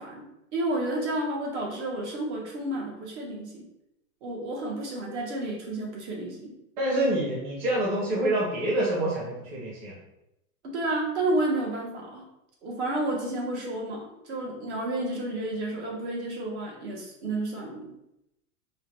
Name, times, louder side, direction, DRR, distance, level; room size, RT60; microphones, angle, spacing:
voice 1, 0.0-3.6 4.2-6.5 10.6-12.2 12.6-17.8, right 2 dB, 50° right, -1 dB, 1.0 m, -31 dB
voice 2, 6.8-9.9, right 1 dB, 25° right, -5 dB, 0.9 m, -27 dB
4.8 x 2.1 x 3.0 m, 0.85 s
supercardioid pair, 170°, 43 cm